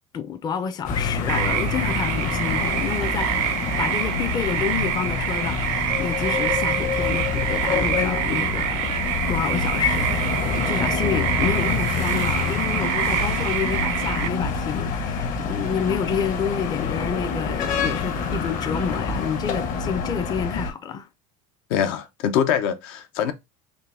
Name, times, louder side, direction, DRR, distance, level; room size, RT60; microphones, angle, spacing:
voice 1, 0.1-8.9 9.3-21.1, left 7 dB, 25° left, 0.5 m, -29 dB
sound 1, 0.8-20.7, left 5 dB, 50° left, 0.9 m, -26 dB
sound 2, 1.3-14.3, right 11 dB, 70° right, 0.5 m, -26 dB
voice 2, 21.7-23.3, left 8 dB, 75° left, 0.6 m, -23 dB
3.8 x 2.6 x 3.2 m
supercardioid pair, 130°, 18 cm